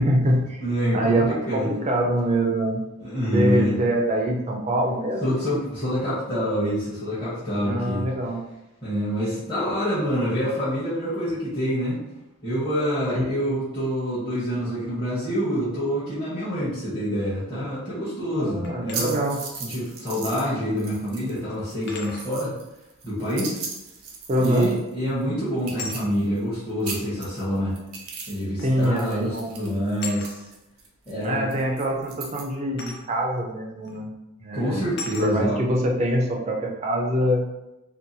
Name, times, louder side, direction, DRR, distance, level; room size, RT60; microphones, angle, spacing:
voice 1, 0.0-0.6 0.9-2.8 3.3-5.2 7.6-8.4 13.1-13.6 18.3-19.4 24.3-24.7 28.6-29.5 31.2-34.1 34.4-34.9 35.2-37.5, right 1 dB, 30° right, 0 dB, 0.4 m, -24 dB
voice 2, 0.6-1.7 3.0-3.7 5.2-8.1 8.8-12.0 12.4-19.2 19.6-22.5 23.0-23.6 24.4-27.8 28.3-30.5 31.1-31.5 34.5-35.6, equal, 20° left, -13 dB, 0.8 m, -26 dB
sound 1, 18.6-19.1 20.6-20.7 21.9-22.3 24.6-24.9 25.8-26.0 27.2-27.3 28.6-28.8 29.1-29.4 30.0-30.4 32.8-33.1 33.9-34.0 35.0-35.3, left 4 dB, 50° left, 0.4 m, -37 dB
sound 2, 18.9-20.5 20.8-21.4 21.7-24.9 25.2-25.3 25.6-26.6 26.8-28.5 28.7-32.4, right 5 dB, 80° right, 0.5 m, -37 dB
2.7 x 2.2 x 2.6 m, 0.95 s
head